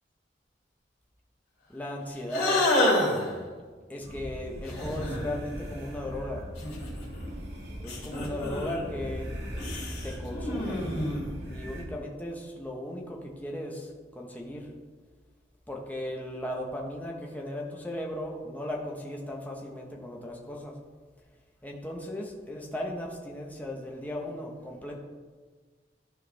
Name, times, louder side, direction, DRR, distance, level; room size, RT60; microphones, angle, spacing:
voice 1, 1.7-2.6 3.9-6.4 7.8-9.3 10.0-10.9 11.5-14.7 15.7-20.8 21.6-25.0, left 1 dB, 10° left, -1 dB, 1.1 m, -36 dB
sound 1, 2.3-3.3 4.7-5.3 6.6-7.3 7.8-8.8 9.6-11.4, left 1 dB, 60° left, 2.8 m, -28 dB
sound 2, 4.0-11.8, equal, 65° right, 1.9 m, -39 dB
14.0 x 4.8 x 3.5 m, 1.5 s
head